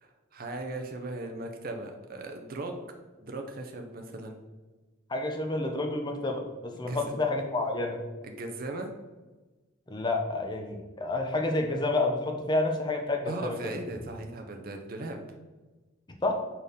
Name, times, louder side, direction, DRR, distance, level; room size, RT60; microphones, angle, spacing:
voice 1, 0.0-2.8 3.2-4.4 6.9-7.1 8.2-8.9 13.2-15.2, right 2 dB, 45° right, 4 dB, 0.6 m, -38 dB
voice 2, 5.1-8.0 9.9-13.6 16.2-16.3, left 2 dB, 20° left, 3 dB, 0.8 m, -29 dB
4.9 x 4.6 x 5.2 m, 1.2 s
head